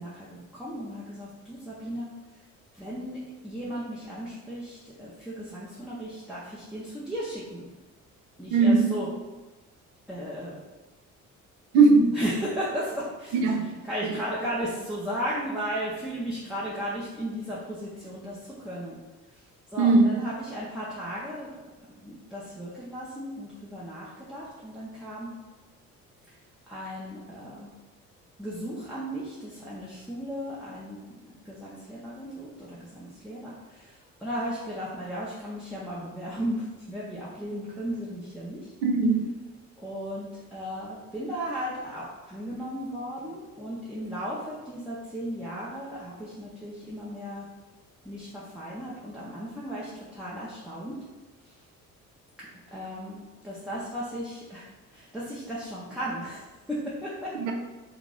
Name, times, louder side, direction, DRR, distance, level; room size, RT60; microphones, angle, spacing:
voice 1, 0.0-2.4 2.7-7.7 8.4-9.1 10.1-10.6 12.1-19.0 19.3-19.4 19.7-21.5 22.0-25.3 26.3-26.4 26.7-27.7 28.4-38.7 39.8-47.5 48.0-51.0 51.4-51.6 52.4-57.3, equal, ahead, -8 dB, 0.7 m, -35 dB
voice 2, 8.5-8.9 11.7-12.1 13.4-13.8 14.0-14.1 19.8-20.2 38.8-39.3 57.3-57.5, right 3 dB, 65° right, 3 dB, 0.6 m, -20 dB
2.9 x 2.6 x 3.7 m, 1.2 s
figure-of-eight pair, 45°, 43 cm